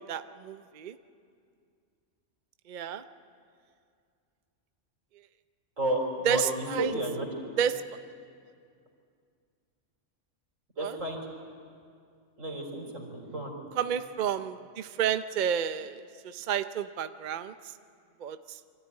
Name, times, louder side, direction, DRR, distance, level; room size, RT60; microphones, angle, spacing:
voice 1, 0.1-1.0 2.7-3.0 6.2-6.9 7.6-7.8 10.8-11.0 13.8-17.5 18.2-18.6, right 8 dB, 50° right, 10 dB, 0.6 m, -31 dB
voice 2, 5.8-7.3 10.8-11.2 12.4-13.5, right 1 dB, 85° right, 0 dB, 4.0 m, -32 dB
24.5 x 14.0 x 9.8 m, 2.3 s
omnidirectional pair, 1.3 m